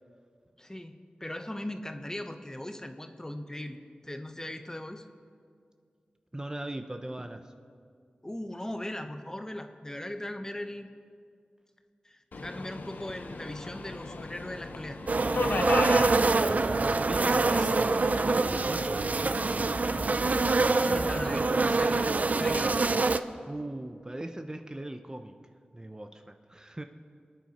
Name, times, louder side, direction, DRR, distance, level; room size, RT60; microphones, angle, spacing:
voice 1, 0.6-3.8 4.0-5.1 8.2-10.9 12.0-15.0 15.3-15.8 17.0-17.7 18.7-18.9 20.7-22.7, left 1 dB, 20° left, 7 dB, 1.1 m, -39 dB
voice 2, 6.3-7.5 16.7-18.0 18.2-19.1 23.5-25.3 25.7-26.8, right 1 dB, 25° right, 6 dB, 0.8 m, -39 dB
Subway metro underground, 12.3-21.5, left 3 dB, 75° left, 0.9 m, -38 dB
sound 1, 15.1-23.2, right 3 dB, 55° right, 0.5 m, -25 dB
24.5 x 9.2 x 4.3 m, 2.2 s
cardioid pair, 50°, 3 cm